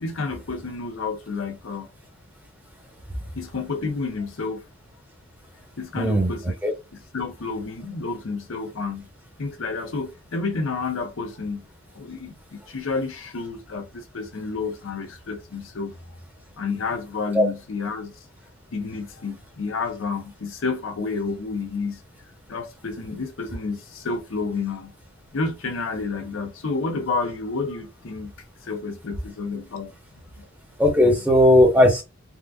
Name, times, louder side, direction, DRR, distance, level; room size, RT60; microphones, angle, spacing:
voice 1, 0.0-1.9 3.3-4.6 5.8-6.6 6.9-9.1 9.4-11.6 11.9-15.9 16.6-18.1 18.7-22.0 22.5-24.9 25.3-28.3 28.6-29.9 30.4-30.5 31.2-31.3, left 4 dB, 65° left, 0.6 m, -30 dB
voice 2, 6.0-6.3 6.6-6.7 17.3-17.5 30.8-32.0, left 1 dB, 10° right, 0.9 m, -16 dB
3.7 x 2.3 x 2.3 m
head